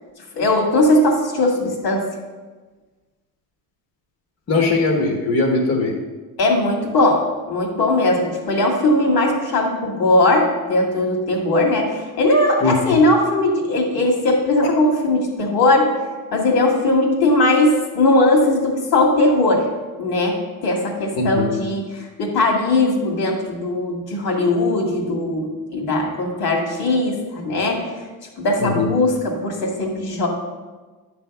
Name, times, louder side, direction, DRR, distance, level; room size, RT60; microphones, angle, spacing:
voice 1, 0.3-2.0 6.4-15.9 16.3-19.7 20.0-27.8 28.4-30.3, left 2 dB, 75° left, 0 dB, 2.1 m, -19 dB
voice 2, 4.5-5.9 12.6-13.0 21.2-21.6 28.6-28.9, left 3 dB, 40° left, 0 dB, 1.2 m, -20 dB
9.8 x 3.5 x 6.9 m, 1.3 s
cardioid pair, 120°, 37 cm